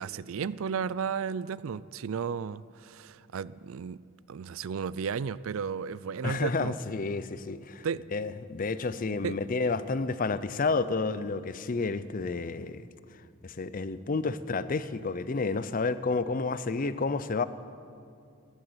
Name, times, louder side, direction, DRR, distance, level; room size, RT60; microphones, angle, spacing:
voice 1, 0.0-4.0 4.3-6.7 7.8-8.0 9.2-9.4, right 6 dB, 70° right, 0.4 m, -34 dB
voice 2, 6.2-7.9 8.1-12.9 13.4-17.4, left 3 dB, 40° left, 0.5 m, -30 dB
15.5 x 10.5 x 8.0 m
head